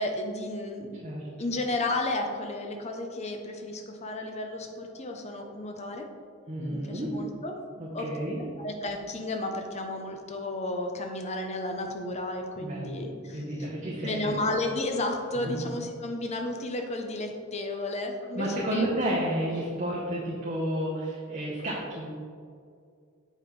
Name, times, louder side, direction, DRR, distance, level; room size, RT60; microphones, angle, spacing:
voice 1, 0.0-1.0 1.4-6.1 6.7-7.6 7.9-8.1 8.6-13.4 14.0-18.5 18.7-18.9, left 2 dB, 30° left, 3 dB, 0.7 m, -32 dB
voice 2, 6.5-7.1 7.8-8.5 12.6-14.3 15.3-15.7 18.3-22.1, right 1 dB, 35° right, -6 dB, 0.9 m, -31 dB
8.1 x 5.2 x 3.2 m, 2.3 s
head